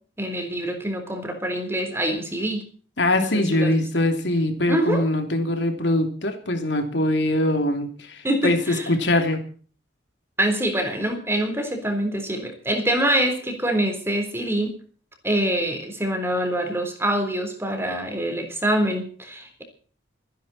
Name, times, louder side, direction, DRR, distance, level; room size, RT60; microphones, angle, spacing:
voice 1, 0.2-2.6 3.2-3.7 4.7-5.0 8.2-8.9 10.4-14.7 15.2-19.6, right 1 dB, 15° right, 5 dB, 3.9 m, -25 dB
voice 2, 3.0-9.4, left 1 dB, 65° left, 5 dB, 3.0 m, -22 dB
25.5 x 10.5 x 4.3 m, 0.44 s
head